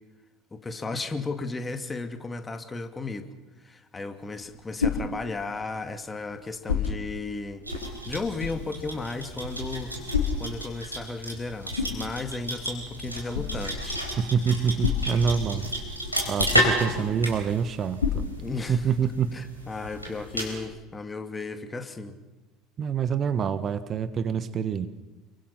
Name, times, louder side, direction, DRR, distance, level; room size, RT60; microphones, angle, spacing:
voice 1, 0.5-3.3 3.6-7.6 8.1-9.9 10.4-14.0 18.4-18.8 19.3-22.2, left 3 dB, 20° left, 8 dB, 2.3 m, -34 dB
sound 1, 4.1-19.0, left 6 dB, 80° left, 3.3 m, -34 dB
sound 2, 7.6-20.6, equal, 90° right, 4.5 m, -32 dB
voice 2, 14.2-15.7 16.3-18.2 18.7-19.4 22.8-24.9, right 6 dB, 35° right, 12 dB, 1.3 m, -26 dB
29.5 x 23.5 x 5.9 m, 1.1 s
figure-of-eight pair, 65°, 0 cm